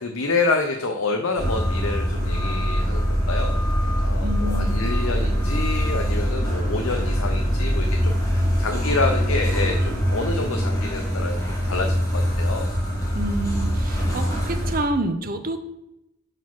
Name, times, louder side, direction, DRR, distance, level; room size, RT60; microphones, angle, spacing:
voice 1, 0.0-12.7, left 3 dB, 80° left, 3 dB, 0.7 m, -28 dB
sound 1, 1.4-14.7, equal, 15° left, 1.8 m, -23 dB
voice 2, 4.2-4.8 13.1-15.6, right 1 dB, 40° right, 7 dB, 0.8 m, -28 dB
5.7 x 4.9 x 6.0 m, 0.88 s
head